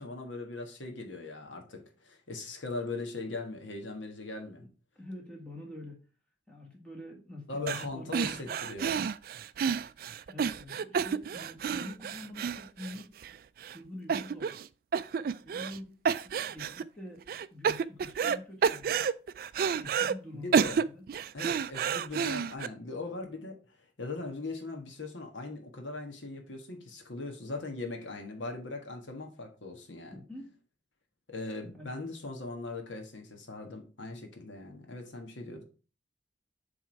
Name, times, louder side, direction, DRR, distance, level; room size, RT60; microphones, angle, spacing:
voice 1, 0.0-4.7 7.5-9.0 20.3-20.8 21.3-23.6 24.0-30.2 31.3-35.6, left 3 dB, 90° left, 4 dB, 1.5 m, -40 dB
voice 2, 5.0-6.0 6.5-8.4 10.3-13.1 13.7-14.5 15.4-17.2 17.5-19.1 19.8-21.0 30.3-30.6 31.7-31.9, left 1 dB, 5° left, -2 dB, 1.8 m, -46 dB
sound 1, 7.7-7.9 8.1-13.3 13.6-13.8 14.1-14.7 14.9-15.8 16.1-16.8 17.3-18.4 18.6-20.1 20.5-22.7, right 6 dB, 50° right, 0.3 m, -30 dB
7.4 x 3.6 x 4.6 m, 0.35 s
head